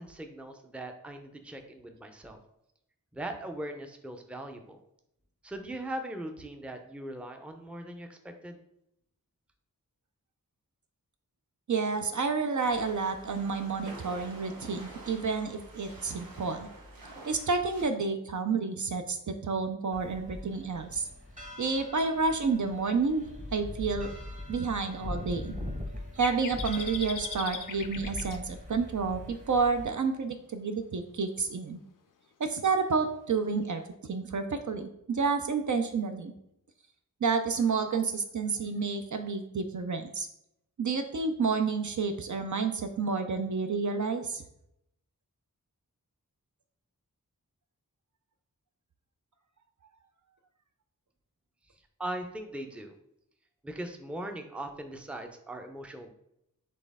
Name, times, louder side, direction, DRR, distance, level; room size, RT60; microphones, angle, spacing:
voice 1, 0.0-2.4 3.1-4.8 5.4-8.6 52.0-52.9 53.6-56.1, right 1 dB, 5° right, 5 dB, 0.5 m, -40 dB
voice 2, 11.7-16.7 17.3-21.1 21.6-23.3 23.5-24.1 24.5-25.5 26.1-31.8 32.4-33.8 34.1-36.3 37.2-40.3 40.8-44.4, right 4 dB, 55° right, 7 dB, 0.5 m, -30 dB
sound 1, 12.6-17.8, right 2 dB, 75° right, 1.0 m, -48 dB
sound 2, 19.9-29.8, left 1 dB, 20° right, 0.9 m, -41 dB
sound 3, 26.2-28.4, left 7 dB, 65° left, 0.5 m, -39 dB
4.2 x 3.2 x 3.5 m, 0.80 s
wide cardioid pair, 65°, 35 cm